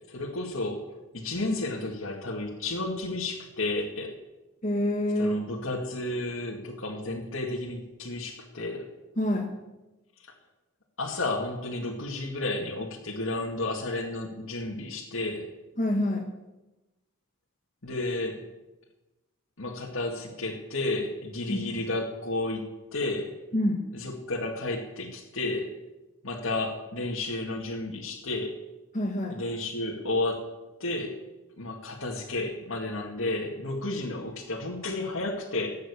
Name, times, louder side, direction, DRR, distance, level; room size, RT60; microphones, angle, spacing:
voice 1, 0.1-0.8 1.1-4.1 5.2-8.9 10.2-10.3 11.0-15.5 17.8-18.4 19.6-22.7 22.9-23.3 23.9-25.7 26.2-28.6 29.3-30.4 30.8-31.1 31.6-35.8, left 2 dB, 75° left, -1 dB, 2.1 m, -32 dB
voice 2, 4.6-5.4 9.2-9.4 15.8-16.2 21.5-21.6 23.5-23.8 28.9-29.3, left 1 dB, 35° left, 2 dB, 1.5 m, -26 dB
15.0 x 9.3 x 8.4 m, 1.0 s
head